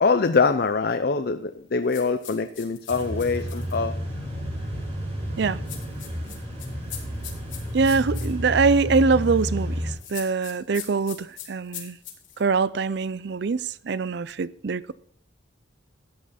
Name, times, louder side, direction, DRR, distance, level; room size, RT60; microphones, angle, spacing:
voice 1, 0.0-3.9, left 4 dB, 50° left, 0.5 m, -23 dB
sound 1, 1.9-3.8 5.7-8.3 9.9-12.4, left 10 dB, 75° left, 3.3 m, -40 dB
sound 2, 2.9-9.9, equal, 30° right, 4.7 m, -31 dB
voice 2, 7.7-12.0 12.4-14.9, right 4 dB, 55° right, 0.4 m, -23 dB
13.5 x 8.7 x 4.2 m
head